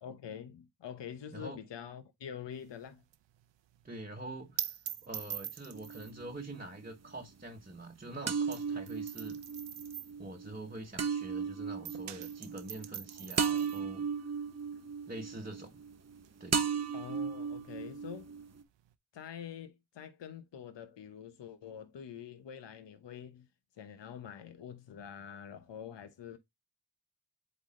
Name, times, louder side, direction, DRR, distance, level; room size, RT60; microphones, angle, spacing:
voice 1, 0.0-3.0 13.2-13.3 14.8-14.9 16.9-18.3 19.1-23.5 23.8-26.4, left 8 dB, 80° left, 1.0 m, -46 dB
sound 1, 2.5-11.4 11.7-18.9, right 10 dB, 85° right, 0.7 m, -45 dB
voice 2, 3.8-9.4 10.2-14.1 15.1-15.8 16.4-16.7, right 2 dB, 20° right, 1.1 m, -45 dB
sound 2, 5.7-6.6 8.3-16.2 16.5-18.6, right 6 dB, 35° right, 0.8 m, -36 dB
8.1 x 3.4 x 3.7 m
wide cardioid pair, 100°, 43 cm